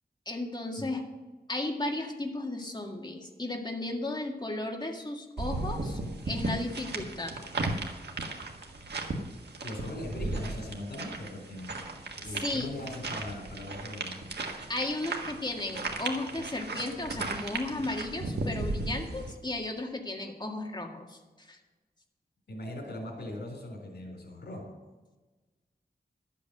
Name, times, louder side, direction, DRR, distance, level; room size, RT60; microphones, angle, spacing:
voice 1, 0.3-1.0 1.5-6.0 6.3-7.3 12.2-12.7 14.7-21.6, left 2 dB, 25° left, 2 dB, 1.9 m, -35 dB
sound 1, 5.4-19.3, right 2 dB, 85° right, 1.6 m, -36 dB
voice 2, 9.6-11.8 12.2-14.3 22.5-24.7, left 1 dB, 85° left, 0 dB, 3.6 m, -40 dB
12.0 x 8.5 x 6.6 m, 1.2 s
wide cardioid pair, 80°, 17 cm